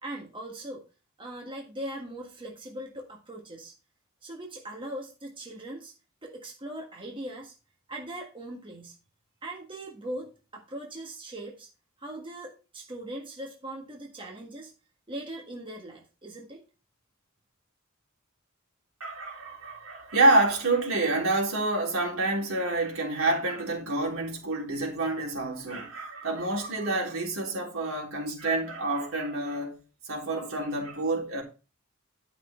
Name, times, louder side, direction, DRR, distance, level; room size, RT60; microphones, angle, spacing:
voice 1, 0.0-0.8 1.2-3.7 4.2-5.9 6.2-7.5 7.9-9.0 9.4-11.7 12.0-14.7 15.1-16.6, right 1 dB, 25° right, 1.7 m, -40 dB
voice 2, 19.0-29.8 30.1-31.4, right 2 dB, 75° right, 3.7 m, -27 dB
11.5 x 6.0 x 4.4 m
head